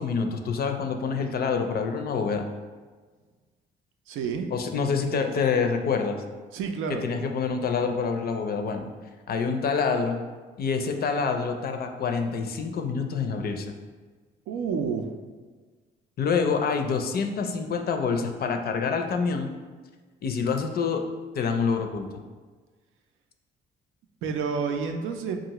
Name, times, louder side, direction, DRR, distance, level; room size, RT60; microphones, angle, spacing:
voice 1, 0.0-2.5 4.5-6.2 7.0-8.9 9.3-10.2 10.6-13.7 16.2-19.5 20.2-21.0 21.3-22.1, left 5 dB, 50° left, 5 dB, 0.4 m, -26 dB
voice 2, 4.1-4.5 6.5-7.1 14.5-15.2 24.2-25.4, right 5 dB, 85° right, 5 dB, 0.5 m, -29 dB
4.6 x 2.4 x 2.9 m, 1.4 s
cardioid pair, 90°, 20 cm